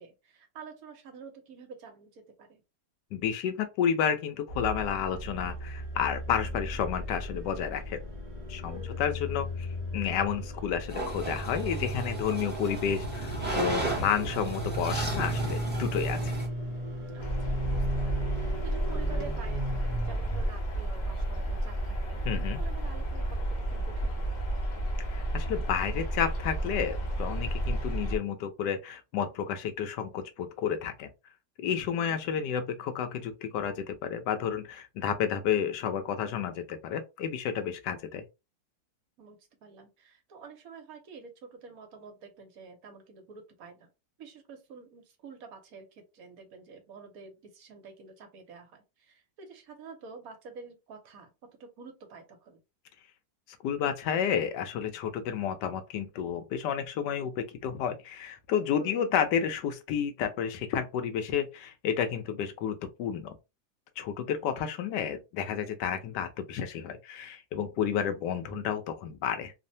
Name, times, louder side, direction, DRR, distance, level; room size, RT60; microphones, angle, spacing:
voice 1, 0.0-2.6 8.7-9.0 17.1-22.3 22.6-24.6 31.9-32.2 39.2-43.9 44.2-51.3 51.6-52.6 58.8-59.1, right 5 dB, 65° right, 1.1 m, -49 dB
voice 2, 3.1-8.0 8.5-9.7 9.9-16.4 22.2-22.6 25.1-31.1 31.6-38.2 53.6-63.3 64.0-69.5, left 8 dB, 90° left, 1.2 m, -31 dB
sound 1, 4.5-20.5, equal, 50° right, 0.3 m, -36 dB
sound 2, 10.9-16.5, right 1 dB, 10° right, 0.6 m, -34 dB
sound 3, 17.2-28.2, right 1 dB, 45° left, 0.6 m, -31 dB
3.1 x 2.1 x 2.6 m
omnidirectional pair, 1.8 m